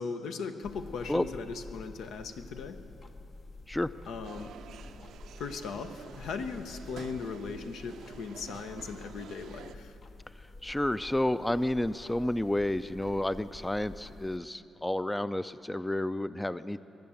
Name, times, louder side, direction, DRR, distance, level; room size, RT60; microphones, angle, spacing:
voice 1, 0.0-2.8 4.1-4.5 5.4-9.9, left 5 dB, 85° left, 8 dB, 0.8 m, -38 dB
sound 1, 0.6-14.4, left 2 dB, 50° left, 0.8 m, -49 dB
sound 2, 4.2-9.7, right 8 dB, 80° right, 0.4 m, -49 dB
voice 2, 10.6-16.8, left 1 dB, 10° left, 14 dB, 0.3 m, -30 dB
22.5 x 7.7 x 7.1 m, 2.9 s
cardioid pair, 80°, 0 cm